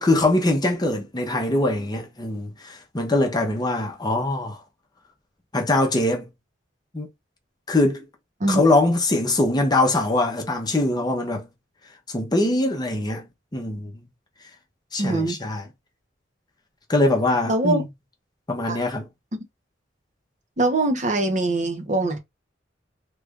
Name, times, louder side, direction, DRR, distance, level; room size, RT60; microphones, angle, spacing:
voice 1, 0.0-4.6 5.5-6.3 6.9-7.1 7.7-8.0 8.5-11.5 12.1-13.2 13.5-14.0 14.9-15.6 16.9-17.8 18.5-19.0, left 2 dB, 20° left, 0.8 m, -22 dB
voice 2, 15.0-15.4 17.5-17.8 18.7-18.8 20.6-22.2, right 2 dB, 40° right, 0.9 m, -22 dB
3.1 x 2.5 x 3.5 m
head